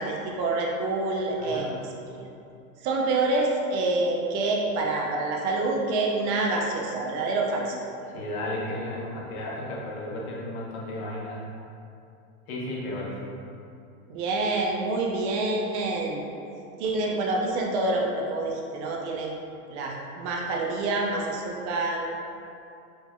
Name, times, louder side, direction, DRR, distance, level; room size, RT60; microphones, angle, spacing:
voice 1, 0.0-1.7 2.1-2.3 2.8-7.8 14.1-16.2 16.8-19.4 19.7-22.1, right 2 dB, 50° right, -1 dB, 0.6 m, -27 dB
voice 2, 1.4-1.8 8.0-11.4 12.5-13.2, left 1 dB, 65° left, -4 dB, 1.0 m, -34 dB
4.4 x 2.7 x 2.2 m, 2.6 s
hypercardioid pair, 115°, 45 cm